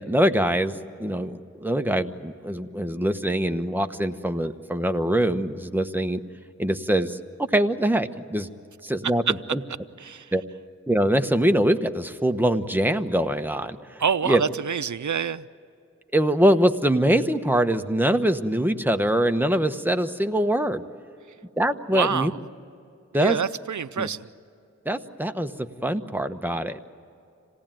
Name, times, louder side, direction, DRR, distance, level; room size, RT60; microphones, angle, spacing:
voice 1, 0.0-6.2 6.6-7.2 7.5-8.5 8.8-9.2 9.5-9.6 10.3-10.4 10.9-14.4 16.1-20.8 21.6-22.3 23.1-23.4 24.0-24.1 24.8-26.8, right 1 dB, 5° right, 7 dB, 1.1 m, -23 dB
voice 2, 10.0-10.3 14.0-15.4 21.9-22.4 23.2-24.3, right 7 dB, 80° right, 14 dB, 0.5 m, -26 dB
26.5 x 18.0 x 9.0 m, 2.6 s
wide cardioid pair, 45°, 29 cm